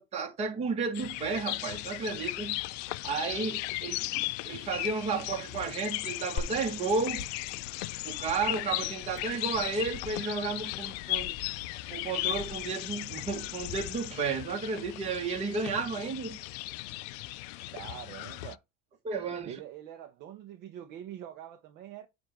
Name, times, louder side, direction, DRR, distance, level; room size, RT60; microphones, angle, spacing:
voice 1, 0.0-2.6 3.0-7.3 8.0-11.3 11.9-16.4 19.0-19.6, right 4 dB, 30° right, 1.7 m, -33 dB
sound 1, 0.9-18.6, left 19 dB, 70° left, 0.4 m, -37 dB
Glass, 6.4-14.3, left 5 dB, 35° left, 1.1 m, -44 dB
voice 2, 17.7-18.6 19.5-22.1, right 11 dB, 50° right, 0.9 m, -44 dB
7.5 x 2.7 x 5.9 m
supercardioid pair, 145°, 21 cm